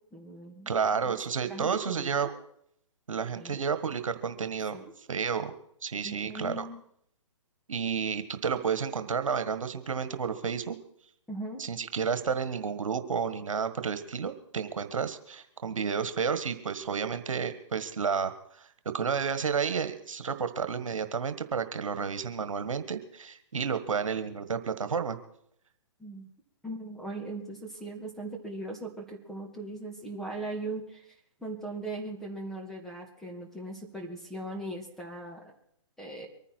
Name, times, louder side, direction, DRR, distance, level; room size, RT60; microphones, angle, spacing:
voice 1, 0.1-0.8 1.4-2.4 3.3-3.6 4.7-4.9 6.0-6.8 11.3-11.6 26.0-26.3 26.6-31.1 31.4-35.4 36.0-36.3, right 2 dB, ahead, 0 dB, 2.2 m, -39 dB
voice 2, 0.6-2.3 3.1-5.5 5.8-6.6 7.7-10.8 11.6-18.7 18.9-25.2, right 6 dB, 75° right, 10 dB, 1.6 m, -31 dB
24.0 x 10.0 x 4.5 m, 0.70 s
hypercardioid pair, 140°, 17 cm